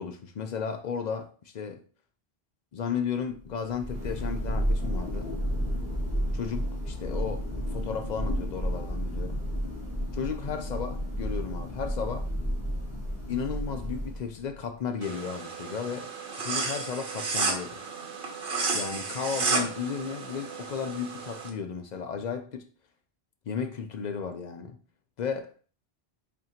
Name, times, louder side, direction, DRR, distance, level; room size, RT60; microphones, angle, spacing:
voice 1, 0.0-1.8 2.7-5.3 6.3-9.4 10.1-12.3 13.3-16.1 16.4-17.8 18.7-22.7 23.5-24.8 25.2-25.5, left 6 dB, 55° left, 0.5 m, -34 dB
Thunder, 3.5-14.5, equal, 15° left, 1.9 m, -31 dB
sound 1, 15.0-21.5, right 4 dB, 65° right, 1.1 m, -32 dB
3.7 x 2.6 x 4.2 m
omnidirectional pair, 1.1 m